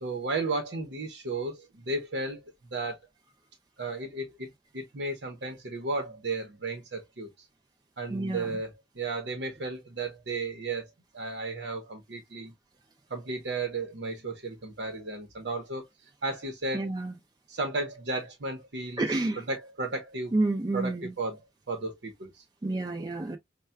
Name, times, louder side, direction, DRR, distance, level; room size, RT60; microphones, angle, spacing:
voice 1, 0.0-2.4 2.7-3.0 3.8-4.5 4.7-7.3 8.0-12.5 13.1-15.9 16.2-16.9 17.5-19.0 19.4-20.3 20.7-21.4 21.7-22.3, right 3 dB, 90° right, 0.9 m, -34 dB
voice 2, 8.1-8.5 16.7-17.2 19.0-19.4 20.3-21.1 22.6-23.4, right 2 dB, 25° right, 0.4 m, -29 dB
5.5 x 2.2 x 2.2 m
head